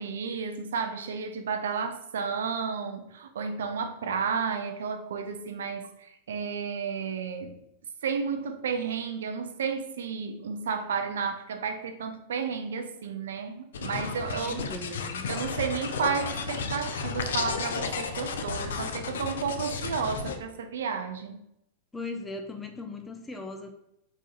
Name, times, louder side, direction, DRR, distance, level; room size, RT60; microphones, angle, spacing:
voice 1, 0.0-7.6 8.0-14.6 15.3-21.4, right 6 dB, 65° right, 6 dB, 0.4 m, -32 dB
sound 1, 13.7-20.4, left 5 dB, 65° left, 0.4 m, -33 dB
voice 2, 14.4-15.3 21.9-23.7, left 3 dB, 10° left, 4 dB, 0.5 m, -38 dB
4.0 x 3.7 x 2.3 m, 0.80 s
figure-of-eight pair, 90°, 0 cm